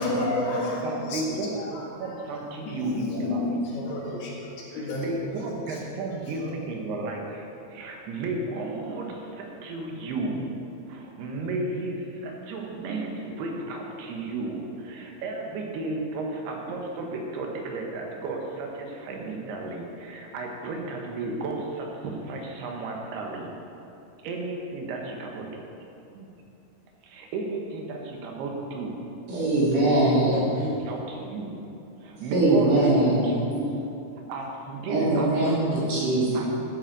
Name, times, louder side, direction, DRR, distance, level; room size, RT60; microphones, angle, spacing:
voice 1, 0.0-1.2 2.7-4.3 4.7-5.0, left 2 dB, 80° left, -3 dB, 3.7 m, -29 dB
voice 2, 0.8-3.5 4.6-10.5 10.9-23.5 24.2-25.5 26.1-26.3 27.0-29.0 29.9-31.6 32.0-33.7 34.3-35.6 36.3-36.5, right 2 dB, 85° right, 0 dB, 3.2 m, -33 dB
voice 3, 29.3-30.3 32.3-33.2 34.9-36.3, right 2 dB, 55° right, -7 dB, 4.0 m, -21 dB
12.0 x 8.9 x 4.0 m, 2.8 s
omnidirectional pair, 4.5 m